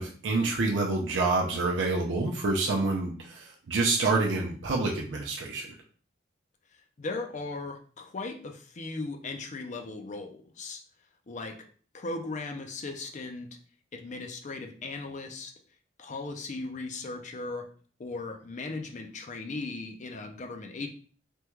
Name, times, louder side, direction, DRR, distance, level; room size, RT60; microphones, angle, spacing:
voice 1, 0.0-5.7, right 3 dB, 70° right, -1 dB, 0.5 m, -27 dB
voice 2, 7.0-10.8 11.3-11.6 11.9-13.5 13.9-15.5 16.0-17.7 18.0-20.9, left 3 dB, 40° left, 4 dB, 0.4 m, -37 dB
3.4 x 2.2 x 3.0 m, 0.43 s
head